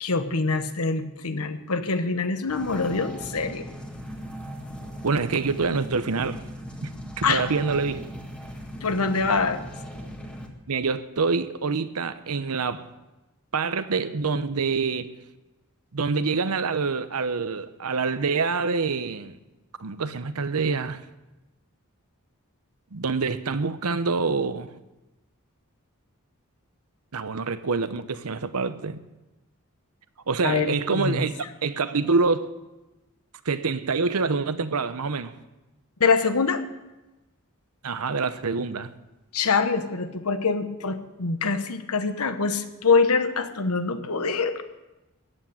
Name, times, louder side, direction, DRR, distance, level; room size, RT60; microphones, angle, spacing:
voice 1, 0.0-3.7 7.2-7.5 8.8-9.6 30.4-31.2 36.0-36.6 39.3-44.6, left 4 dB, 80° left, 1.2 m, -24 dB
sound 1, 2.5-10.5, equal, 5° left, 1.6 m, -38 dB
voice 2, 5.0-6.4 6.8-6.9 7.2-8.1 10.7-12.9 13.5-15.1 15.9-19.4 19.8-21.0 22.9-24.7 27.1-29.0 30.3-31.3 31.6-32.5 33.4-35.4 37.8-38.9, right 4 dB, 80° right, 0.9 m, -26 dB
14.5 x 8.7 x 9.2 m
head